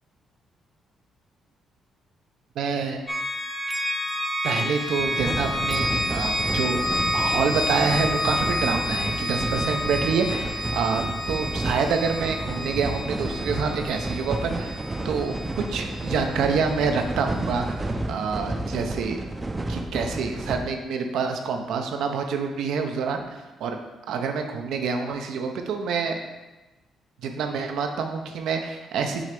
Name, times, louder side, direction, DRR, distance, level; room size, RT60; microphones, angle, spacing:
voice 1, 2.6-3.0 4.4-6.8 7.1-14.8 15.0-19.2 19.7-23.8 24.1-26.2 27.2-29.2, right 5 dB, 80° right, 4 dB, 0.7 m, -27 dB
sound 1, 3.1-16.9, left 1 dB, 10° left, 0.8 m, -29 dB
sound 2, 5.0-20.6, right 2 dB, 20° right, 0.5 m, -31 dB
6.1 x 3.3 x 5.3 m, 1.1 s
cardioid pair, 90°, 0 cm